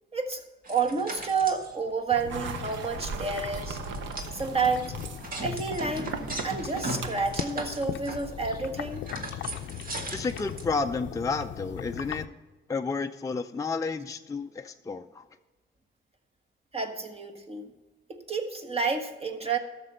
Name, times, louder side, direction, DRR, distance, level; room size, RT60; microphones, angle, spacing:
voice 1, 0.1-3.8 4.3-5.0 5.4-6.1 6.4-9.0 16.7-17.7 18.1-19.6, right 4 dB, 30° right, 4 dB, 1.6 m, -30 dB
sound 1, 0.6-1.7 2.2-2.3 2.5-2.8 3.2-10.6, right 2 dB, 45° right, 1.9 m, -38 dB
sound 2, 2.1-12.3, left 10 dB, 70° left, 0.6 m, -39 dB
sound 3, 2.3-7.4, right 5 dB, 75° right, 1.0 m, -38 dB
voice 2, 10.1-12.4 12.7-15.3, left 4 dB, 15° left, 5 dB, 0.5 m, -31 dB
13.0 x 6.8 x 5.5 m, 1.2 s
cardioid pair, 90°, 20 cm